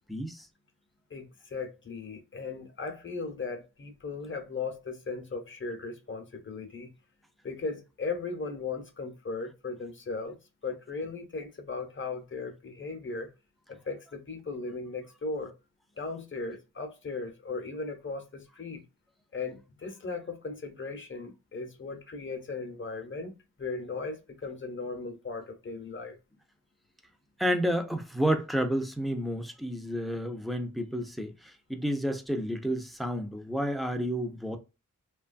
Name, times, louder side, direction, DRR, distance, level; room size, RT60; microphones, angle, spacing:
voice 1, 0.1-0.5 27.4-34.6, equal, ahead, 0.4 m, -30 dB
voice 2, 1.1-6.9 7.4-13.3 13.7-15.5 16.0-18.8 19.3-26.2, left 4 dB, 40° left, 0.7 m, -37 dB
2.9 x 2.3 x 2.5 m
wide cardioid pair, 110°, 31 cm